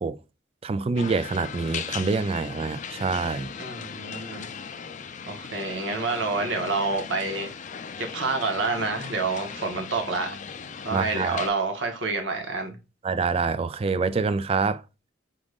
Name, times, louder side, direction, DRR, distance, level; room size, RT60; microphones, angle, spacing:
voice 1, 0.6-3.5 10.9-11.4 13.0-14.8, right 4 dB, 30° right, 0.3 m, -26 dB
sound 1, 1.0-11.5, left 6 dB, 40° left, 0.4 m, -38 dB
voice 2, 3.6-4.5 5.3-7.5 8.0-10.4 10.8-12.8, right 3 dB, 70° right, 1.3 m, -28 dB
4.9 x 3.7 x 2.4 m
head